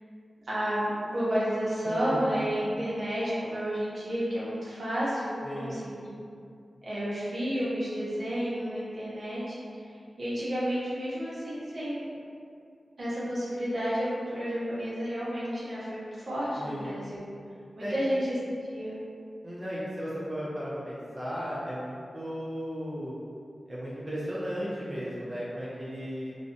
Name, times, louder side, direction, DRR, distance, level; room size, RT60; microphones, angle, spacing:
voice 1, 0.5-5.9 6.8-9.6 10.2-12.1 13.0-17.2 17.8-18.4 18.7-18.9, equal, 60° right, -10 dB, 0.8 m, -31 dB
voice 2, 1.8-2.5 5.4-5.8 16.6-16.9 17.8-18.0 19.4-23.2 23.7-26.3, equal, 20° right, -9 dB, 0.5 m, -35 dB
2.5 x 2.1 x 2.6 m, 2.4 s
wide cardioid pair, 100°, 0 cm